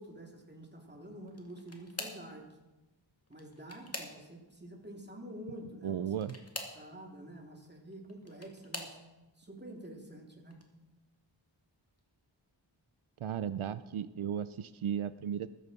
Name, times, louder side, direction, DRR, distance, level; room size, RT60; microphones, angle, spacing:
voice 1, 0.0-2.5 3.3-6.1 6.7-9.0 9.4-10.6, right 1 dB, 20° right, 1 dB, 2.4 m, -48 dB
sound 1, 1.3-2.3 3.3-4.5 6.1-6.8 7.9-9.0 9.7-10.1 10.5-10.6 12.0-12.1, left 1 dB, 30° left, 2.1 m, -44 dB
voice 2, 5.8-6.4 13.2-15.5, right 9 dB, 90° right, 14 dB, 0.5 m, -35 dB
14.5 x 14.0 x 4.0 m, 1.1 s
wide cardioid pair, 60°, 47 cm